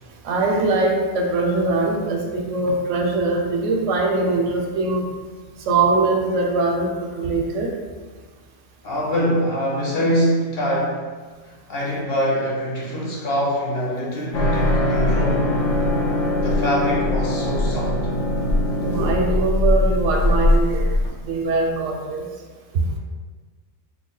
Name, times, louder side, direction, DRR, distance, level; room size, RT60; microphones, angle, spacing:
voice 1, 0.2-5.1 5.6-7.7 18.8-22.2, right 3 dB, 80° right, 1 dB, 0.9 m, -22 dB
voice 2, 8.8-11.1 11.4-15.5 16.4-18.0, equal, 55° left, -4 dB, 0.9 m, -24 dB
sound 1, 14.3-21.1, left 1 dB, 80° left, 1.0 m, -21 dB
3.2 x 2.3 x 3.7 m, 1.4 s
omnidirectional pair, 1.3 m